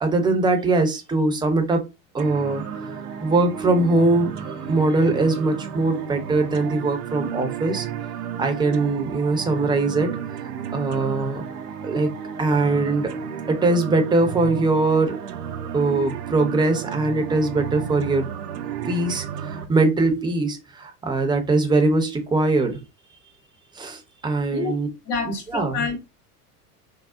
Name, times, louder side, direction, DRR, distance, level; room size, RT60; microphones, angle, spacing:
voice 1, 0.0-1.8 2.1-2.6 3.2-4.3 4.7-7.9 8.4-10.2 10.7-11.4 11.8-13.1 13.5-15.2 15.7-18.3 18.8-22.8 23.7-24.9 25.2-25.9, right 2 dB, 10° right, 0.6 m, -21 dB
sound 1, 2.2-19.6, right 7 dB, 80° right, 0.7 m, -33 dB
voice 2, 25.1-26.0, left 4 dB, 70° left, 1.6 m, -27 dB
3.7 x 2.0 x 2.3 m
hypercardioid pair, 90°, 46 cm